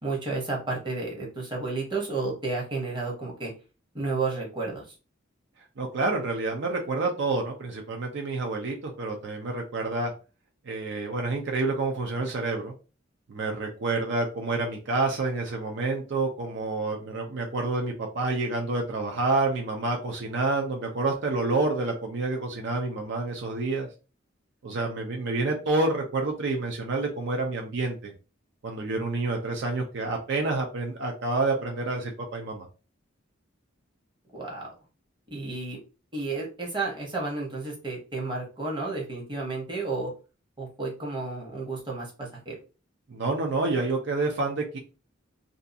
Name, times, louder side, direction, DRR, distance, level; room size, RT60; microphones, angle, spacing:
voice 1, 0.0-3.5 3.9-4.8 34.3-34.7 35.3-35.8 36.1-40.1 40.6-42.6, right 3 dB, 25° right, -2 dB, 0.8 m, -32 dB
voice 2, 5.8-10.1 10.7-12.7 13.3-23.9 24.6-28.1 28.6-32.7 43.1-44.8, right 3 dB, 60° right, 1 dB, 0.5 m, -28 dB
2.6 x 2.3 x 2.5 m, 0.33 s
head